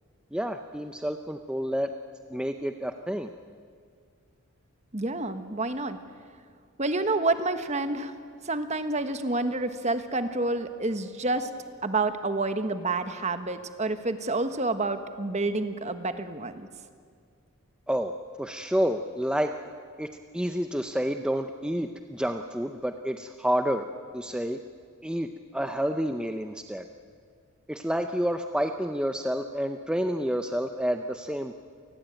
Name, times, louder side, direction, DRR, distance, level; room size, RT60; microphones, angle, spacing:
voice 1, 0.3-1.9 2.3-3.3 17.9-18.1 18.4-19.5 20.0-23.8 24.1-24.6 25.0-26.8 27.7-31.6, equal, 5° right, 6 dB, 0.6 m, -29 dB
voice 2, 4.9-6.0 6.8-8.1 8.4-11.5 11.8-16.7, right 2 dB, 30° right, 9 dB, 1.3 m, -28 dB
27.5 x 19.5 x 9.0 m, 2.1 s
head